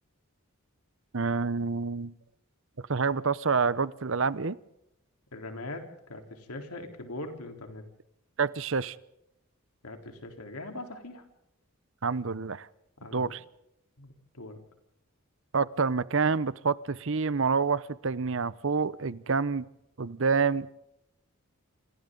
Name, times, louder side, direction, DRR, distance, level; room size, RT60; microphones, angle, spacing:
voice 1, 1.1-2.1 2.9-4.6 8.4-9.0 12.0-12.7 13.1-13.4 15.5-19.6 20.0-20.7, right 5 dB, 60° right, 17 dB, 0.8 m, -27 dB
voice 2, 5.3-5.8 6.1-7.8 9.8-11.2 13.0-13.3 14.0-14.6, left 2 dB, 90° left, 4 dB, 3.8 m, -41 dB
28.5 x 27.0 x 3.9 m, 0.82 s
head